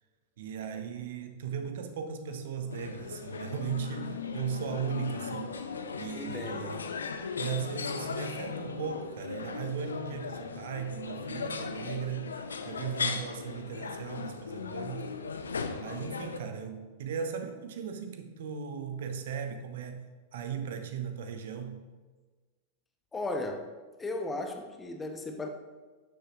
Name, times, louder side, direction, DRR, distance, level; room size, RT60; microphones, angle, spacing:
voice 1, 0.4-5.6 6.0-6.8 7.4-12.3 12.6-15.1 15.8-21.8, right 6 dB, 60° right, 8 dB, 0.8 m, -37 dB
sound 1, 2.7-16.4, left 5 dB, 70° left, 0.6 m, -37 dB
voice 2, 6.1-6.8 23.1-23.7 24.0-25.5, left 2 dB, 15° left, 4 dB, 1.0 m, -36 dB
11.5 x 6.9 x 2.9 m, 1.4 s
figure-of-eight pair, 90°, 0 cm